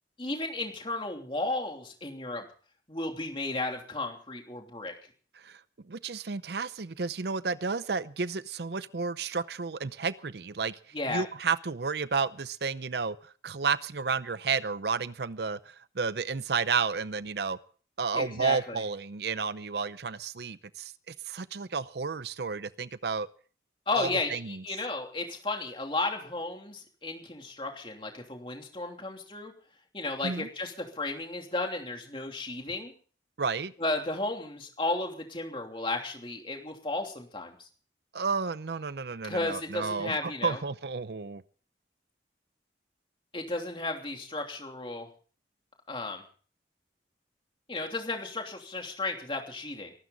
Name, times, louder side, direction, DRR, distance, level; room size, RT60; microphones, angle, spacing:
voice 1, 0.2-2.4 2.9-4.9 10.9-11.2 18.1-18.8 23.9-29.5 29.9-32.9 33.8-37.7 39.2-40.6 43.3-45.1 45.9-46.2 47.7-49.9, left 2 dB, 30° left, 2 dB, 3.0 m, -34 dB
voice 2, 5.9-10.8 11.1-17.6 18.0-23.3 24.0-24.6 30.2-30.5 33.4-33.7 38.1-41.4, right 5 dB, 65° right, 15 dB, 0.6 m, -32 dB
23.5 x 12.5 x 4.0 m, 0.42 s
head